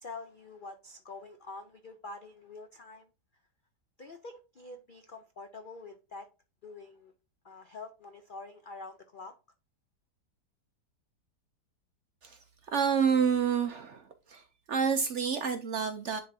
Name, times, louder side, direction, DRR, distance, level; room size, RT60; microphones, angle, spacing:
voice 1, 0.0-3.1 4.0-6.3 6.6-7.1 7.4-9.3, left 3 dB, 75° left, 0.4 m, -46 dB
voice 2, 12.7-14.4 14.7-16.2, right 6 dB, 60° right, 0.7 m, -28 dB
10.5 x 3.8 x 2.7 m
omnidirectional pair, 1.8 m